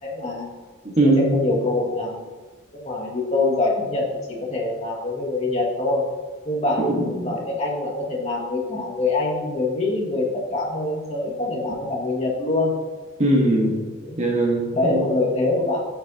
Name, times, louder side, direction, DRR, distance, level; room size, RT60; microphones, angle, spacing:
voice 1, 0.0-0.5 1.0-2.3 2.7-6.0 6.4-12.7 14.0-14.2 14.7-15.8, left 2 dB, 35° left, -3 dB, 1.9 m, -24 dB
voice 2, 1.0-1.3 6.8-7.0 13.2-13.7 14.2-15.0, right 1 dB, 35° right, 0 dB, 1.5 m, -19 dB
11.5 x 8.2 x 2.9 m, 1.3 s
head